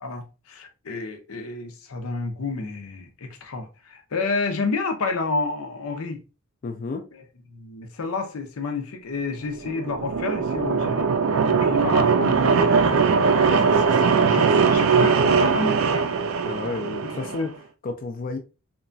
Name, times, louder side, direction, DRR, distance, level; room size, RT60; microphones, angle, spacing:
voice 1, 0.0-6.2 7.5-11.1 11.5-13.2 13.6-16.1 17.0-17.5, left 3 dB, 90° left, 0.6 m, -30 dB
voice 2, 6.6-7.0 16.4-18.4, left 3 dB, 40° left, 0.3 m, -31 dB
sound 1, 9.6-17.5, right 5 dB, 75° right, 0.4 m, -20 dB
2.9 x 2.3 x 2.5 m
head